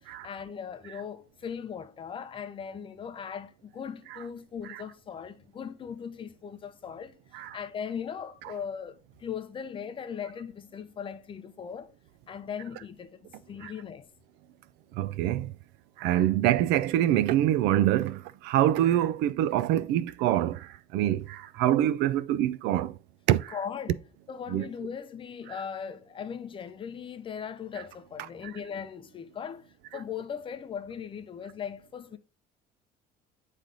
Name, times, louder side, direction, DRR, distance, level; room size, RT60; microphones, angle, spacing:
voice 1, 0.0-7.2 7.5-11.9 12.3-14.1 23.5-24.0 24.3-32.2, left 7 dB, 30° left, 0.6 m, -39 dB
voice 2, 15.0-15.5 16.0-18.2 18.4-20.6 20.9-22.9 23.3-23.6 24.5-24.6, right 12 dB, 75° right, 0.5 m, -25 dB
8.9 x 3.2 x 3.9 m
cardioid pair, 135°, 17 cm